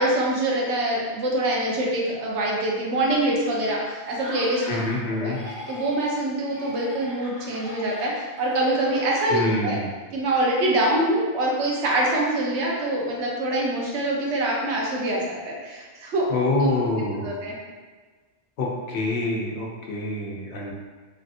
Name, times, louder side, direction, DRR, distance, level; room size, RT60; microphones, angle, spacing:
voice 1, 0.0-4.8 5.1-5.3 5.7-9.8 10.1-16.3 16.6-16.7 17.2-17.6, right 1 dB, 90° right, -3 dB, 1.0 m, -24 dB
Laughter, 4.1-5.0 5.3-6.2 6.5-9.8, left 1 dB, 55° right, 1.4 m, -40 dB
voice 2, 4.7-5.4 9.3-9.9 16.3-17.4 18.6-20.7, left 2 dB, 75° left, -2 dB, 0.9 m, -26 dB
3.2 x 2.4 x 2.6 m, 1.4 s
omnidirectional pair, 1.1 m